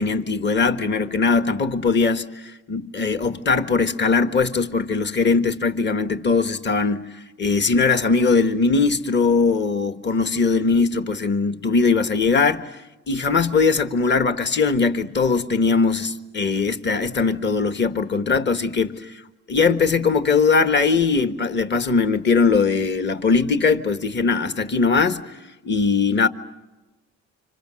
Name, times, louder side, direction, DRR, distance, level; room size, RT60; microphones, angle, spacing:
voice 1, 0.0-12.8 13.1-19.2 19.5-26.3, left 4 dB, 35° left, 1.5 m, -20 dB
30.0 x 26.5 x 6.4 m
cardioid pair, 90°, 30 cm